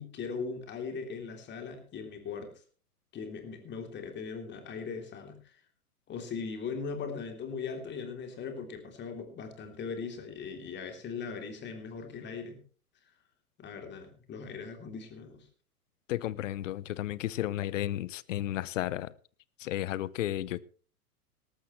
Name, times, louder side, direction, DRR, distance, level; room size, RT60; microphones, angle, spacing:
voice 1, 0.0-2.5 3.1-5.5 6.1-12.6 13.6-15.5, left 5 dB, 25° left, 3.3 m, -39 dB
voice 2, 16.1-19.1 19.6-20.6, left 13 dB, 55° left, 0.9 m, -33 dB
19.0 x 13.5 x 3.2 m
figure-of-eight pair, 110°, 46 cm